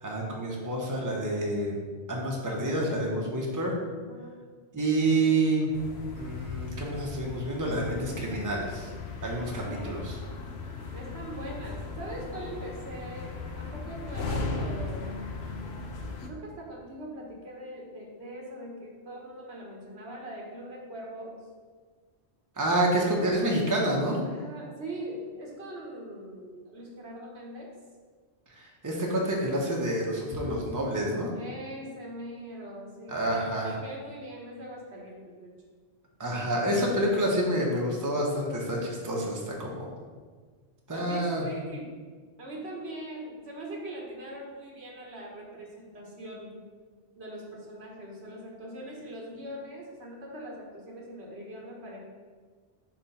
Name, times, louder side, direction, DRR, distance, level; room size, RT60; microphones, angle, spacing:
voice 1, 0.0-1.8 2.1-3.8 4.7-5.7 6.1-8.9 9.2-10.2 22.6-24.2 28.5-31.3 33.1-33.8 36.2-39.9 40.9-41.5, right 1 dB, 20° right, -2 dB, 0.9 m, -28 dB
voice 2, 4.0-4.4 9.6-10.2 10.9-15.0 16.2-21.4 24.3-27.7 31.3-35.5 40.9-41.9 42.4-46.5 47.2-52.0, right 1 dB, 75° right, -2 dB, 1.5 m, -41 dB
sound 1, 5.7-16.3, left 3 dB, 75° left, 0.9 m, -37 dB
4.5 x 4.3 x 5.5 m, 1.5 s
omnidirectional pair, 1.1 m